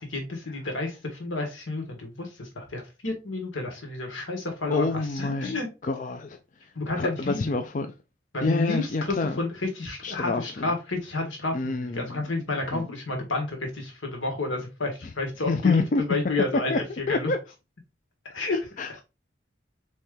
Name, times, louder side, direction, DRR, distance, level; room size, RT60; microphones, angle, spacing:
voice 1, 0.0-5.7 6.7-7.6 8.3-17.3 18.2-18.6, left 2 dB, 85° left, 1.6 m, -30 dB
voice 2, 4.7-6.4 6.9-7.9 8.4-9.4 10.0-10.4 11.5-12.3 12.7-12.9 15.5-16.0 16.7-16.8 17.1-17.4 18.8-19.0, left 3 dB, 40° left, 0.4 m, -27 dB
4.2 x 3.2 x 3.7 m
head